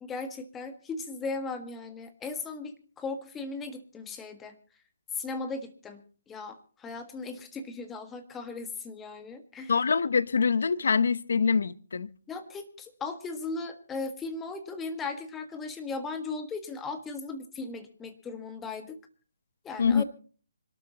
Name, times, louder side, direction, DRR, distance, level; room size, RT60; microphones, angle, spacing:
voice 1, 0.0-4.6 5.1-9.7 12.3-19.0 19.6-20.0, left 3 dB, 10° left, 1.5 m, -37 dB
voice 2, 9.7-12.1 19.8-20.0, left 5 dB, 65° left, 0.8 m, -24 dB
26.0 x 12.5 x 2.9 m
hypercardioid pair, 155°, 0 cm